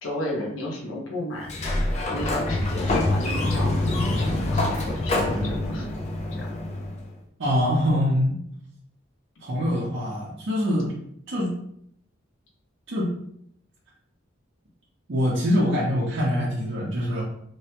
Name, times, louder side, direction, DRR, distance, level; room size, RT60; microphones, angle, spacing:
voice 1, 0.0-1.8 2.1-5.9 6.4-6.5, left 1 dB, 80° left, -1 dB, 0.7 m, -33 dB
Sliding door, 1.4-7.1, left 2 dB, 35° left, 0.4 m, -25 dB
voice 2, 7.4-8.4 9.4-10.9 11.3-11.5 12.9-13.1 15.1-17.2, equal, 65° right, -6 dB, 0.7 m, -24 dB
3.0 x 2.1 x 2.9 m, 0.70 s
head